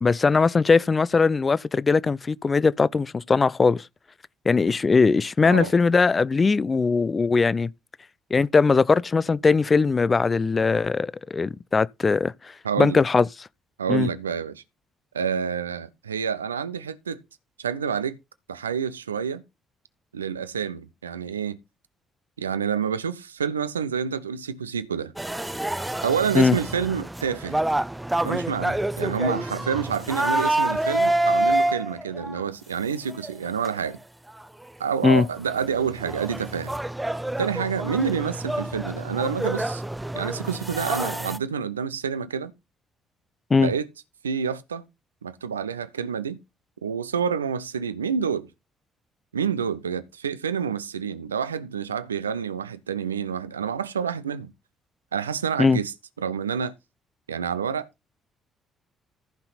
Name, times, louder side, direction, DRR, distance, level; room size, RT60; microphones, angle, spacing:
voice 1, 0.0-3.8 4.5-7.7 8.3-12.3 12.8-13.3 13.9-14.1 26.3-26.6 35.0-35.3 43.5-43.7 55.6-55.8, left 4 dB, 30° left, 0.5 m, -20 dB
voice 2, 12.6-13.0 13.8-14.6 15.1-17.2 17.6-18.2 18.5-19.4 20.1-21.6 22.4-25.1 26.0-27.6 28.2-34.0 34.8-36.7 37.4-39.8 40.1-42.5 43.6-43.9 44.2-44.8 45.2-46.4 46.8-48.5 49.3-54.5 55.1-56.7 57.3-57.9, right 7 dB, 85° right, 0.6 m, -28 dB
sound 1, 25.2-32.4 33.1-33.3 33.6-33.7 34.4-34.5 34.9-35.0 35.2-41.4, right 1 dB, 10° right, 0.8 m, -27 dB
14.5 x 5.8 x 4.0 m
figure-of-eight pair, 45°, 0 cm